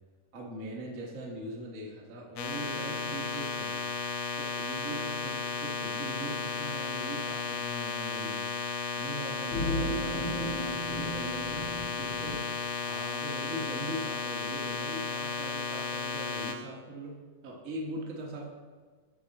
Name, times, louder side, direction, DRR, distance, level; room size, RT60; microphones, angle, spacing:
voice 1, 0.3-3.9 4.4-8.5 8.9-12.5 12.8-18.5, right 1 dB, 80° right, -2 dB, 0.7 m, -41 dB
sound 1, 2.4-16.5, left 5 dB, 85° left, 2.3 m, -34 dB
sound 2, 9.5-12.4, equal, 30° left, 2.8 m, -34 dB
14.5 x 4.9 x 4.0 m, 1.5 s
omnidirectional pair, 3.7 m